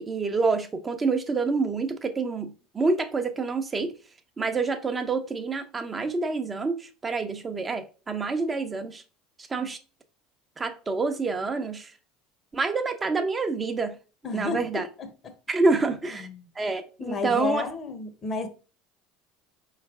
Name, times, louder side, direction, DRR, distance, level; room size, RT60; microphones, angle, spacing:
voice 1, 0.0-3.9 4.4-9.0 9.5-9.8 10.6-11.9 12.5-14.0 14.3-14.9 15.5-16.3 16.6-17.7, right 4 dB, 25° right, 0.7 m, -27 dB
voice 2, 14.2-15.3 16.2-16.4 17.0-18.5, left 4 dB, 40° left, 1.0 m, -32 dB
4.4 x 3.2 x 3.6 m
hypercardioid pair, 85°, 0 cm